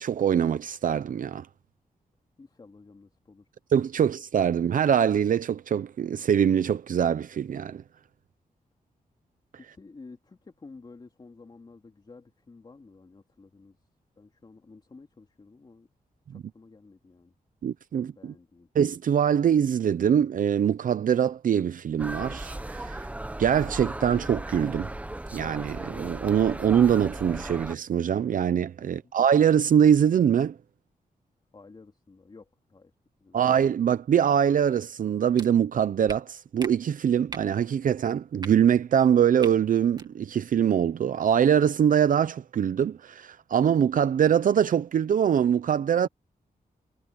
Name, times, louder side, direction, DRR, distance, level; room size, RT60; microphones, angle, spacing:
voice 1, 0.0-1.5 3.7-7.8 16.3-16.4 17.6-18.3 18.7-23.1 23.4-24.9 25.3-30.6 33.3-46.1, right 8 dB, 65° right, 0.6 m, -23 dB
voice 2, 2.4-3.5 9.6-13.8 14.2-15.9 16.3-17.3 18.2-18.7 28.8-29.1 31.5-32.9 33.2-33.4, left 3 dB, 30° left, 3.0 m, -51 dB
sound 1, 22.0-27.7, right 1 dB, 10° right, 1.0 m, -36 dB
sound 2, 35.4-35.5 36.1-36.2 36.6-36.7 37.3-37.5 38.4-38.5 39.4-39.5 39.9-40.1, right 3 dB, 30° right, 2.2 m, -39 dB
wide cardioid pair, 160°, 15 cm